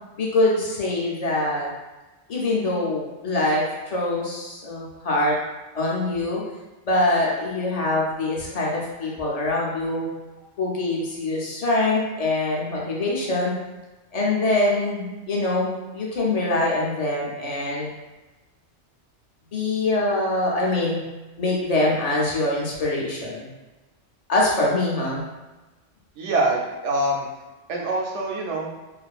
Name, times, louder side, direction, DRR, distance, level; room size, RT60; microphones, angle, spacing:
voice 1, 0.2-1.7 2.3-5.4 5.7-6.4 6.9-10.1 10.6-13.5 14.1-17.9 19.5-21.0 21.4-23.5 24.3-25.2, left 2 dB, 50° left, -4 dB, 0.4 m, -24 dB
voice 2, 26.2-27.3 27.7-28.7, right 2 dB, 90° right, -1 dB, 0.9 m, -24 dB
2.5 x 2.4 x 2.3 m, 1.1 s
omnidirectional pair, 1.2 m